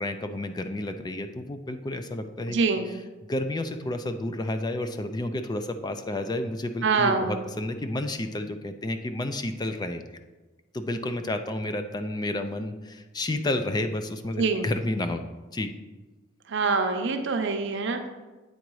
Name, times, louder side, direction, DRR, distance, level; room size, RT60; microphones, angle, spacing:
voice 1, 0.0-2.6 3.3-10.0 10.7-15.2 15.5-15.7, left 1 dB, 20° left, 8 dB, 0.4 m, -31 dB
voice 2, 2.5-2.9 6.8-7.4 14.4-14.7 16.5-18.1, right 4 dB, 65° right, 6 dB, 0.7 m, -25 dB
8.5 x 3.9 x 4.7 m, 1.2 s
head